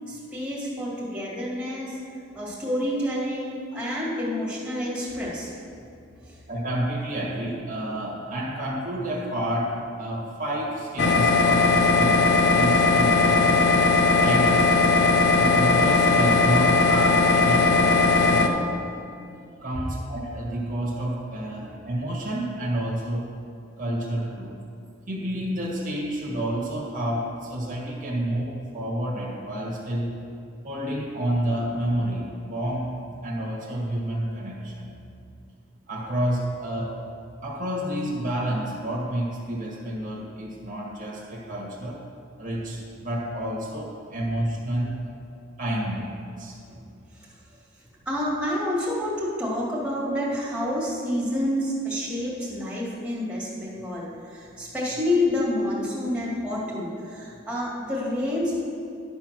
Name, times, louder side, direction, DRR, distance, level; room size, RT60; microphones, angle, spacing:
voice 1, 0.1-2.0 2.3-5.5 6.3-6.4 21.6-21.7 46.7-46.8 47.1-47.3 48.1-58.7, left 1 dB, 5° right, -6 dB, 2.1 m, -28 dB
voice 2, 6.5-13.6 14.2-14.9 15.3-18.6 19.6-23.3 23.8-24.6 25.1-30.1 30.6-33.0 33.2-34.9 35.9-37.0 37.4-42.0 42.4-45.0 45.6-46.1 46.4-46.6, right 1 dB, 40° right, -3 dB, 1.6 m, -29 dB
sound 1, 11.0-18.5, left 3 dB, 60° left, 0.6 m, -19 dB
11.5 x 4.5 x 6.4 m, 2.5 s
head